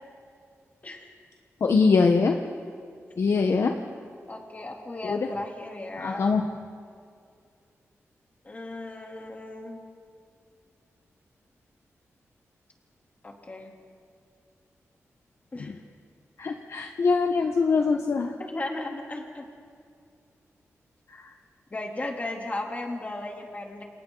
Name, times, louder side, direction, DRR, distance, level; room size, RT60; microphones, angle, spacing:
voice 1, 1.6-2.4 3.2-3.8 5.0-5.3 6.0-6.5 15.6-15.7 16.4-18.3 21.1-21.3, left 4 dB, 60° left, 4 dB, 1.1 m, -23 dB
voice 2, 4.3-6.3 8.4-9.8 13.2-13.7 15.5-15.7 18.4-19.4 21.7-23.8, left 2 dB, 30° left, 0 dB, 3.2 m, -35 dB
29.0 x 28.0 x 3.9 m, 2.3 s
wide cardioid pair, 125°, 5 cm